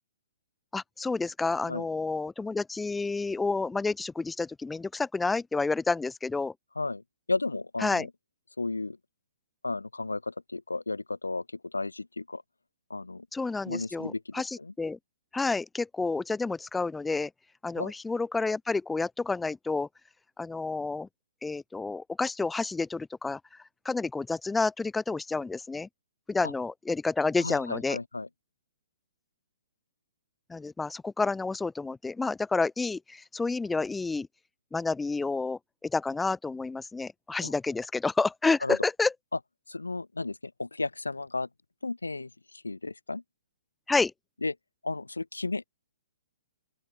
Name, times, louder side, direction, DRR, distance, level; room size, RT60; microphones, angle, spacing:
voice 1, 0.7-6.5 7.8-8.1 13.3-15.0 15.3-17.3 17.6-19.9 20.4-21.1 21.4-23.4 23.9-25.9 26.3-28.0 30.5-34.3 34.7-39.1 43.9-44.1, left 3 dB, 5° left, 1.8 m, -29 dB
voice 2, 7.3-8.1 8.6-9.0 9.6-11.4 11.7-12.4 12.9-13.3 13.7-14.7 17.8-17.9 27.4-28.3 37.4-37.5 38.6-38.8 39.7-41.5 41.8-42.3 42.6-43.2 44.4-44.5 44.8-45.6, left 3 dB, 85° left, 1.0 m, -33 dB
open air
figure-of-eight pair, 125°, 0 cm